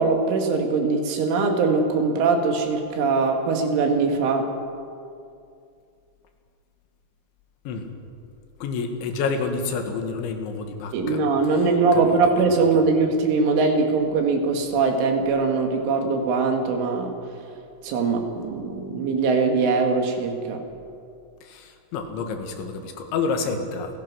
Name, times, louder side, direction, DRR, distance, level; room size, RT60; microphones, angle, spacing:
voice 1, 0.0-4.5 10.9-17.1 17.8-20.6, right 4 dB, 90° right, 3 dB, 4.6 m, -21 dB
voice 2, 8.6-11.2 12.1-12.2 12.6-12.7 21.4-24.0, left 4 dB, 75° left, 5 dB, 4.0 m, -29 dB
29.0 x 16.5 x 6.3 m, 2.4 s
omnidirectional pair, 5.4 m